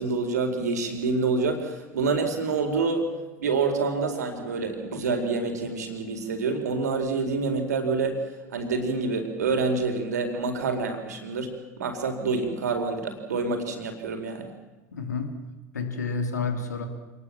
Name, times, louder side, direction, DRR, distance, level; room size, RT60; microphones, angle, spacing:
voice 1, 0.0-3.1 3.4-8.2 8.5-11.5 11.8-14.5, right 4 dB, 75° right, 5 dB, 4.4 m, -27 dB
voice 2, 14.9-15.4 15.7-16.9, left 4 dB, 80° left, 7 dB, 2.9 m, -29 dB
27.0 x 20.0 x 7.5 m, 1.1 s
figure-of-eight pair, 75°, 9 cm